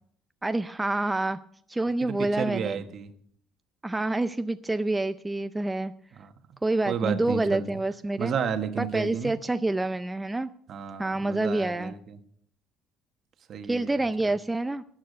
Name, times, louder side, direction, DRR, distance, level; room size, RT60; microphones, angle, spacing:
voice 1, 0.4-1.4 1.7-2.8 3.8-5.9 6.6-8.3 8.8-10.5 11.0-11.9 13.7-14.8, right 2 dB, 10° right, 10 dB, 0.4 m, -27 dB
voice 2, 2.0-3.1 6.1-6.3 6.9-7.7 8.2-9.3 10.7-12.2 13.5-14.0 14.2-14.3, right 7 dB, 50° right, 7 dB, 1.3 m, -32 dB
13.5 x 9.0 x 5.2 m, 0.65 s
cardioid pair, 110°, 0 cm